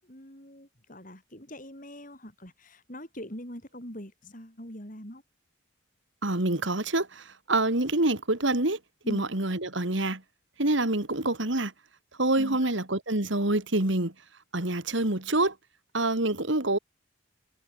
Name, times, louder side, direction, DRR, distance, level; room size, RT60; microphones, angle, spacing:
voice 1, 0.0-5.2 9.0-9.2 12.3-12.7, equal, 40° left, 7.0 m, -43 dB
voice 2, 6.2-8.8 9.1-10.2 10.6-11.7 12.2-14.1 14.5-15.5 15.9-16.8, right 2 dB, 65° right, 2.7 m, -26 dB
head